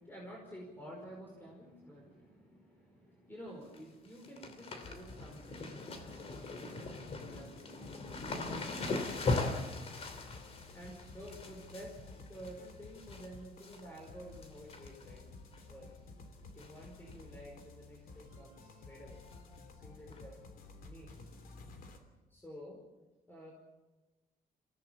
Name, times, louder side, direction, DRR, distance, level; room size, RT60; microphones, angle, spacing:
voice 1, 0.0-9.8 10.7-12.0 12.3-15.2 15.7-16.0 16.5-19.2 19.7-20.4 20.8-21.2 22.3-22.8 23.3-23.5, equal, 15° left, -2 dB, 5.0 m, -51 dB
sound 1, 3.5-3.8 4.1-13.3 13.6-14.1 14.4-15.2 15.5-15.6 16.6-16.9 17.1-17.2 17.6-17.7 19.3-19.4 20.1-20.2, left 3 dB, 45° left, 2.9 m, -40 dB
sound 2, 4.8-22.0, left 3 dB, 75° left, 3.1 m, -53 dB
28.5 x 16.5 x 7.1 m, 1.2 s
cardioid pair, 140°, 15 cm